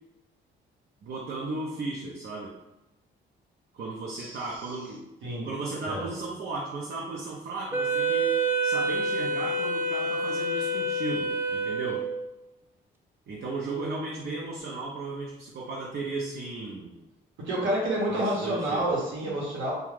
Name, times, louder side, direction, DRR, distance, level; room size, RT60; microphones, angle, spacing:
voice 1, 1.0-2.5 3.7-5.1 5.4-8.3 8.6-12.0 13.3-16.9 18.1-18.9 19.2-19.4, right 3 dB, 55° right, -3 dB, 0.6 m, -35 dB
voice 2, 5.2-5.5 5.8-6.1 17.4-19.7, right 1 dB, 80° right, -5 dB, 1.0 m, -29 dB
Wind instrument woodwind instrument, 7.7-12.3, right 2 dB, 10° right, 0.3 m, -27 dB
2.4 x 2.3 x 3.2 m, 0.96 s
cardioid pair, 90°, 20 cm